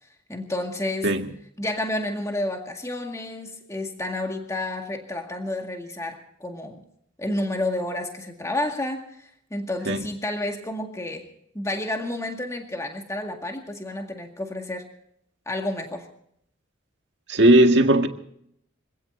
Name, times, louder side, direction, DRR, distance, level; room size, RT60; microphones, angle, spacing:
voice 1, 0.3-1.1 1.6-6.8 7.2-11.3 11.5-14.9 15.5-16.1, left 1 dB, 15° left, 2.0 m, -30 dB
voice 2, 17.3-18.1, right 1 dB, 60° right, 2.0 m, -17 dB
25.5 x 17.5 x 2.7 m
head